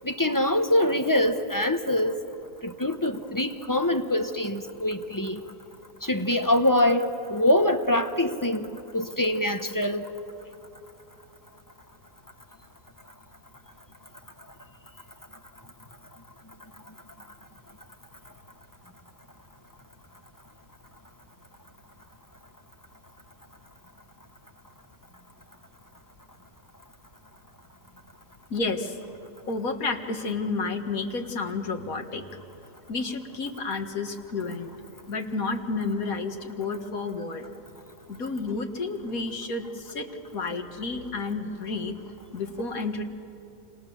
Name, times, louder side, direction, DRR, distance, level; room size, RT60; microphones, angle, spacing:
voice 1, 0.0-2.2 2.6-5.4 6.0-10.1, left 1 dB, 15° left, 7 dB, 0.8 m, -24 dB
voice 2, 28.5-29.0 29.5-32.3 32.9-34.7 35.1-37.5 38.1-40.1 40.3-42.0 42.3-43.0, left 3 dB, 65° left, 5 dB, 2.2 m, -31 dB
29.0 x 26.5 x 7.1 m, 2.9 s
omnidirectional pair, 1.6 m